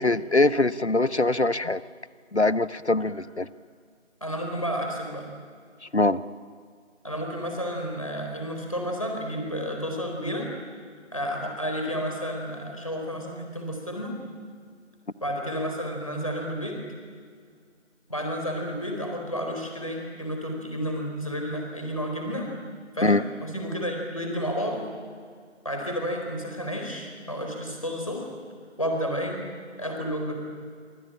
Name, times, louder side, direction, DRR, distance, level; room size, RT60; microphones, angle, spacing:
voice 1, 0.0-1.8 2.3-3.5 5.9-6.2 23.0-23.2, left 2 dB, 65° left, 16 dB, 1.1 m, -22 dB
voice 2, 4.2-5.3 7.0-10.5 11.1-14.1 15.2-16.8 18.1-22.5 22.9-24.9 25.6-28.3 28.8-29.4 29.8-30.4, equal, 30° left, 1 dB, 4.4 m, -31 dB
27.0 x 24.5 x 8.9 m, 2.1 s
figure-of-eight pair, 175°, 36 cm